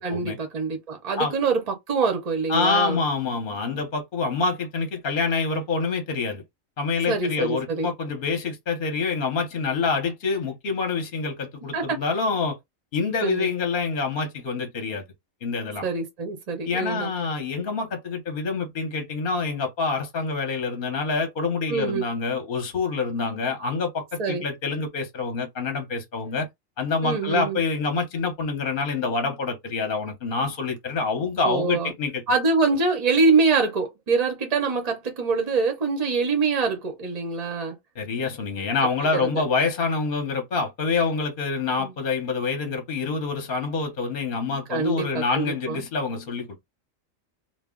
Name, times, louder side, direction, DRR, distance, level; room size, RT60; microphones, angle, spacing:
voice 1, 0.0-1.6 1.9-3.0 7.1-7.9 11.7-12.0 13.2-13.5 15.8-17.1 21.7-22.0 24.2-24.4 27.0-27.6 31.4-31.9 32.3-37.8 38.6-38.7 39.2-39.3 41.8-41.9 44.7-45.8, right 4 dB, 45° right, 0.5 m, -24 dB
voice 2, 2.5-6.4 6.8-12.6 12.9-15.0 15.4-15.8 16.7-26.5 26.8-32.2 38.0-46.6, left 4 dB, 50° left, 0.8 m, -26 dB
2.2 x 2.0 x 3.5 m
omnidirectional pair, 1.4 m